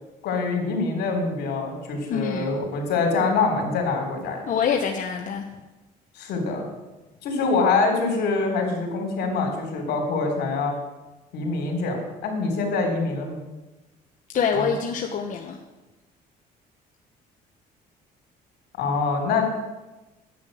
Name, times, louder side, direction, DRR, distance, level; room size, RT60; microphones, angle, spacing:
voice 1, 0.2-4.4 6.1-6.7 7.2-10.7 11.3-12.0 12.2-13.4 14.5-14.7 18.8-19.4, left 4 dB, 75° left, 2 dB, 3.4 m, -25 dB
voice 2, 2.1-2.5 4.5-5.5 14.3-15.6, left 6 dB, 50° left, 2 dB, 1.0 m, -25 dB
10.5 x 8.5 x 6.3 m, 1.1 s
cardioid pair, 110°, 17 cm